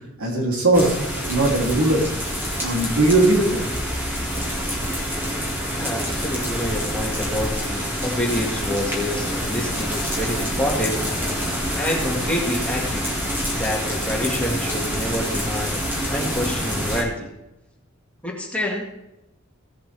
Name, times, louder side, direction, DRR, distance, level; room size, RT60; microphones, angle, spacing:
voice 1, 0.2-2.0 2.6-3.6, right 2 dB, 85° right, -2 dB, 3.0 m, -19 dB
sound 1, 0.7-17.0, equal, 10° right, 1.9 m, -26 dB
voice 2, 5.8-11.1 11.7-13.1 13.5-15.8 16.1-17.3 18.2-18.8, equal, 5° left, -2 dB, 2.0 m, -27 dB
16.5 x 7.8 x 3.4 m, 0.91 s
head